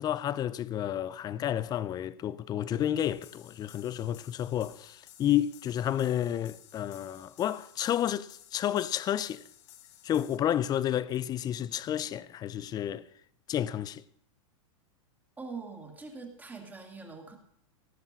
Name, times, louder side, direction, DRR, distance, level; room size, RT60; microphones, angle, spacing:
voice 1, 0.0-9.4 10.0-13.1 13.5-14.0, left 11 dB, 25° left, 0.5 m, -31 dB
sound 1, 3.0-10.4, left 12 dB, 60° left, 2.0 m, -55 dB
voice 2, 15.4-17.4, right 4 dB, 10° right, 2.4 m, -43 dB
18.0 x 7.2 x 6.8 m
hypercardioid pair, 135°, 17 cm